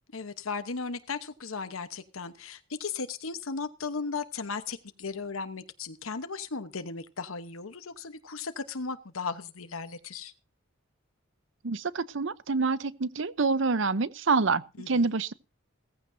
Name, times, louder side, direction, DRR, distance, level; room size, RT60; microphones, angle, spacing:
voice 1, 0.1-10.3 14.8-15.2, left 4 dB, 90° left, 1.1 m, -36 dB
voice 2, 11.6-15.3, right 4 dB, 65° right, 0.8 m, -27 dB
17.0 x 15.0 x 2.7 m
head